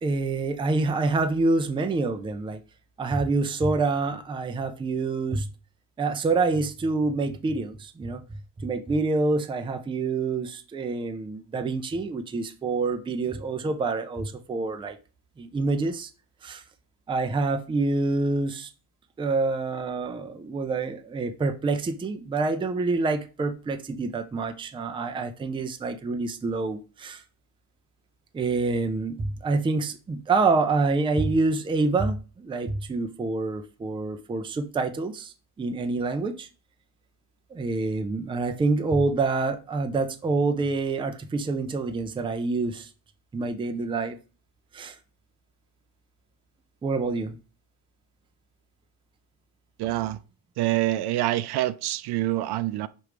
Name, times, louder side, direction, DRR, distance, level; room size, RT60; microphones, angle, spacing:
voice 1, 0.0-2.6 3.0-5.5 6.0-8.2 8.6-15.0 15.4-16.1 16.4-16.6 17.1-18.7 19.2-27.2 28.3-36.5 37.5-42.9 43.3-44.2 44.7-45.0 46.8-47.4, right 3 dB, 15° right, 0.4 m, -27 dB
voice 2, 49.8-50.2 50.6-52.9, right 15 dB, 70° right, 0.5 m, -26 dB
6.1 x 3.1 x 4.9 m
cardioid pair, 165°, 41 cm